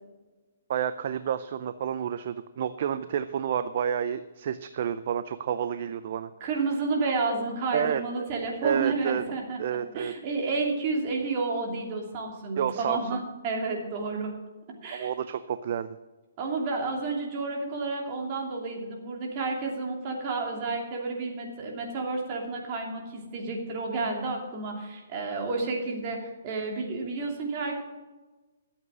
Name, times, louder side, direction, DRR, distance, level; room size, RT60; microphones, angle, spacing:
voice 1, 0.7-6.3 7.7-8.3 8.6-9.2 9.6-10.1 12.6-13.2 14.9-16.0, right 8 dB, 45° right, 13 dB, 0.5 m, -30 dB
voice 2, 6.4-14.3 14.8-15.1 16.4-27.8, right 3 dB, 30° right, 0 dB, 2.8 m, -31 dB
12.5 x 8.1 x 6.1 m, 1.2 s
hypercardioid pair, 165°, 0 cm